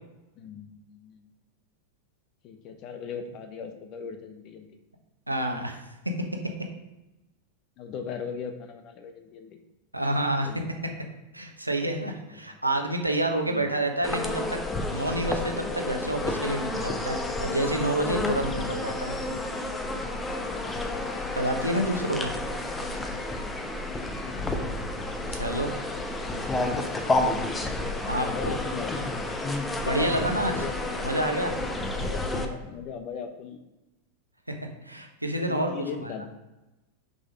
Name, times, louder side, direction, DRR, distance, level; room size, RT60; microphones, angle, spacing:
voice 1, 0.4-1.2 2.4-4.7 7.8-9.6 10.4-10.7 12.3-12.6 13.5-13.7 18.5-18.7 20.4-21.3 23.4-23.8 24.2-24.3 25.9-26.7 28.1-29.2 29.7-31.4 32.0-33.6 35.4-36.2, left 6 dB, 40° left, 6 dB, 1.0 m, -39 dB
voice 2, 5.3-5.9 9.9-10.5 11.3-14.6 14.9-19.2 21.3-22.3 25.3-25.7 28.1-28.6 29.8-30.5 31.0-31.5 34.8-35.7 36.0-36.1, right 1 dB, 85° right, 3 dB, 1.1 m, -28 dB
sound 1, 14.0-32.4, left 2 dB, 15° left, 0.9 m, -30 dB
6.3 x 5.5 x 5.2 m, 1.0 s
figure-of-eight pair, 90°, 0 cm